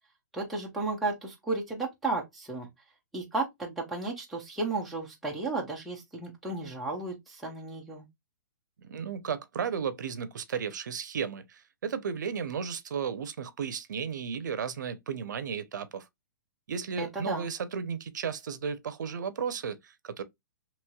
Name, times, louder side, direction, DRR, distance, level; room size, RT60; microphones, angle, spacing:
voice 1, 0.3-2.7 3.1-8.1 17.0-17.5, right 3 dB, ahead, 0.3 m, -33 dB
voice 2, 8.8-16.1 16.7-20.2, right 6 dB, 70° right, 0.6 m, -34 dB
3.0 x 2.9 x 2.2 m
hypercardioid pair, 175°, 10 cm